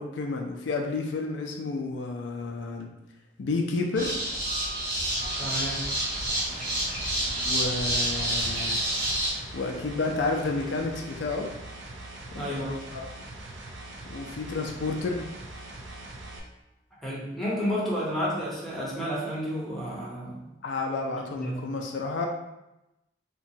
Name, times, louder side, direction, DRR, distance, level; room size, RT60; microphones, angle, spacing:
voice 1, 0.0-2.9 3.4-4.1 7.5-8.8 9.5-11.5 12.3-13.0 14.1-15.2 20.6-22.3, left 3 dB, 85° left, 2 dB, 0.4 m, -31 dB
sound 1, 3.9-9.3, right 1 dB, 45° right, 1.3 m, -28 dB
sound 2, 5.1-16.4, right 2 dB, 85° right, 0.5 m, -42 dB
voice 2, 5.4-5.9 12.4-12.9 17.0-20.4 21.1-21.6, equal, ahead, -6 dB, 0.7 m, -31 dB
2.8 x 2.2 x 2.6 m, 0.93 s
head